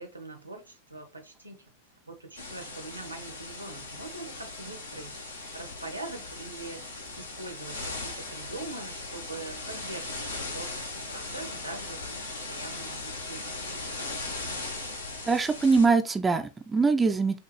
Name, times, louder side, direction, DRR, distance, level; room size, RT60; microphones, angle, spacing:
voice 1, 0.0-1.8 2.1-5.2 5.5-13.7, right 2 dB, 85° right, 1.0 m, -43 dB
sound 1, 2.4-15.9, left 2 dB, 75° left, 1.0 m, -38 dB
voice 2, 15.3-17.4, right 4 dB, 15° right, 0.4 m, -23 dB
5.8 x 2.5 x 3.1 m
figure-of-eight pair, 90°, 0 cm